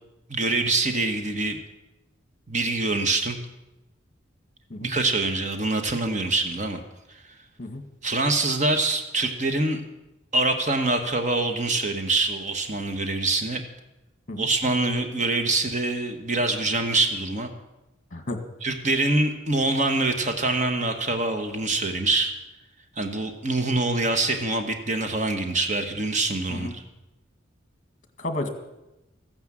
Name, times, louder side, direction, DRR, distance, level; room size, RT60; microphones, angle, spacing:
voice 1, 0.3-1.6 2.5-3.4 4.8-6.8 7.1-7.2 8.0-9.8 10.3-13.6 14.4-17.5 18.6-22.3 23.0-26.8, right 2 dB, 35° right, 6 dB, 1.2 m, -25 dB
voice 2, 28.2-28.5, left 2 dB, 40° left, 6 dB, 1.8 m, -31 dB
15.0 x 9.7 x 7.5 m, 0.97 s
head